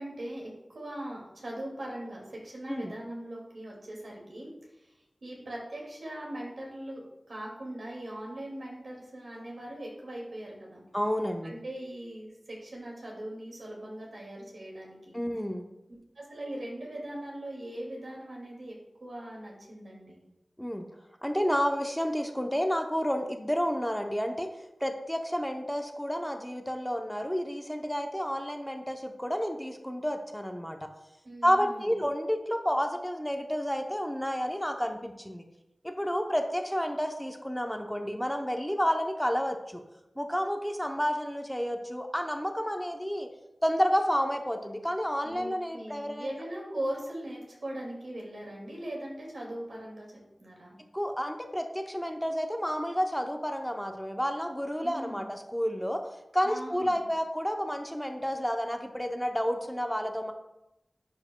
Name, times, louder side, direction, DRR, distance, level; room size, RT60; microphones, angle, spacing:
voice 1, 0.0-4.5 5.2-10.8 11.4-15.2 16.2-18.8 19.0-20.2 31.2-31.9 45.2-50.1 50.4-50.8 54.8-55.3 56.4-57.1, right 1 dB, 80° right, -3 dB, 2.1 m, -40 dB
voice 2, 10.9-11.5 15.1-15.6 20.6-20.9 21.2-24.5 24.8-30.8 31.4-35.4 35.8-39.8 40.2-43.3 43.6-46.3 50.9-56.0 56.3-60.3, equal, 5° left, 4 dB, 0.7 m, -30 dB
10.5 x 4.6 x 2.2 m, 0.90 s
wide cardioid pair, 50°, 0 cm